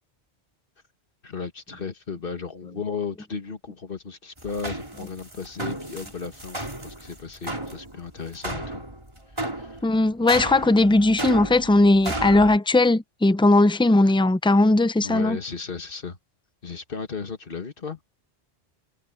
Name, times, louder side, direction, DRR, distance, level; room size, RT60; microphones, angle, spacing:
voice 1, 1.2-8.8 9.5-9.8 15.0-16.2 16.6-18.0, left 5 dB, 55° left, 1.7 m, -35 dB
sound 1, 4.4-12.6, right 1 dB, 25° right, 3.8 m, -33 dB
voice 2, 9.8-15.4, left 2 dB, 10° left, 0.3 m, -18 dB
omnidirectional pair, 1.1 m